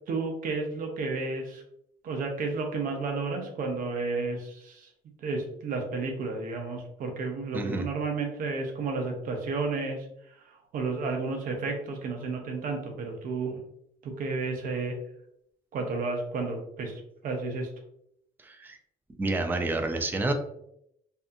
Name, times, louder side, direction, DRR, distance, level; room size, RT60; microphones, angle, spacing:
voice 1, 0.1-1.6 2.0-4.9 5.2-10.1 10.5-13.6 14.0-15.0 15.7-17.7, right 3 dB, 55° right, 3 dB, 0.7 m, -32 dB
voice 2, 7.5-7.8 18.4-18.8 19.2-20.3, right 2 dB, 10° right, 5 dB, 0.3 m, -29 dB
2.7 x 2.3 x 2.5 m, 0.74 s
cardioid pair, 110°, 17 cm